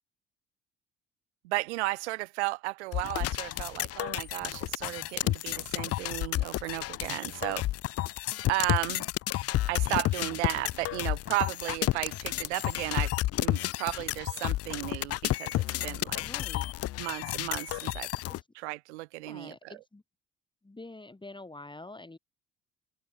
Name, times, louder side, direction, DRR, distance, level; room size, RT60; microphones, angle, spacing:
voice 1, 1.4-7.7 8.5-9.1 9.7-16.2 17.0-18.1 18.5-19.7, right 21 dB, 70° right, 0.6 m, -34 dB
sound 1, 2.9-18.4, left 15 dB, 40° left, 0.7 m, -31 dB
voice 2, 16.2-16.7 18.3-18.5 19.2-20.0 20.6-22.2, left 2 dB, 15° left, 4.9 m, -46 dB
open air
figure-of-eight pair, 50°, 36 cm